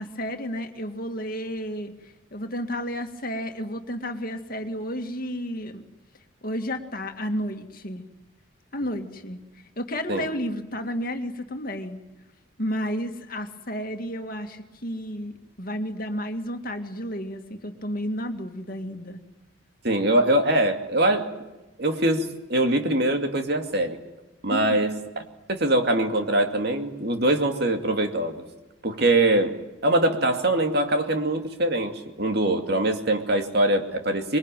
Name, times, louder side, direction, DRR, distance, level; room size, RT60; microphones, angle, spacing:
voice 1, 0.0-5.8 6.4-8.0 8.7-9.4 9.8-12.0 12.6-19.2 24.5-24.8, equal, 45° left, 6 dB, 2.1 m, -32 dB
voice 2, 19.8-21.3 21.8-24.0 24.4-25.0 25.5-28.4 28.8-34.4, right 1 dB, 50° right, 5 dB, 2.5 m, -23 dB
26.0 x 22.0 x 9.2 m, 1.1 s
head